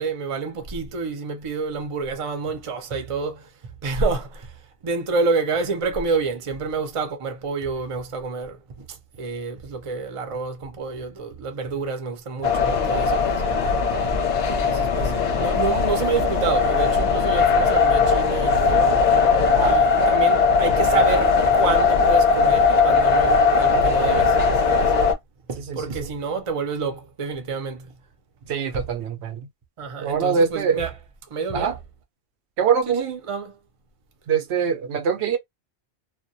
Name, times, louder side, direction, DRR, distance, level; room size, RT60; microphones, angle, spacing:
voice 1, 0.0-3.5 3.8-4.6 4.8-13.4 14.6-19.0 19.6-24.4 24.7-24.9 25.5-27.9 28.7-28.8 29.8-30.9 31.3-31.7 32.9-33.6, right 4 dB, 40° right, 0.5 m, -28 dB
sound 1, 12.4-25.1, left 4 dB, 50° left, 0.5 m, -19 dB
voice 2, 25.7-26.1 28.5-29.5 30.0-30.8 31.5-31.8 32.6-33.1 34.3-35.4, right 6 dB, 80° right, 0.8 m, -23 dB
2.2 x 2.1 x 2.6 m
omnidirectional pair, 1.1 m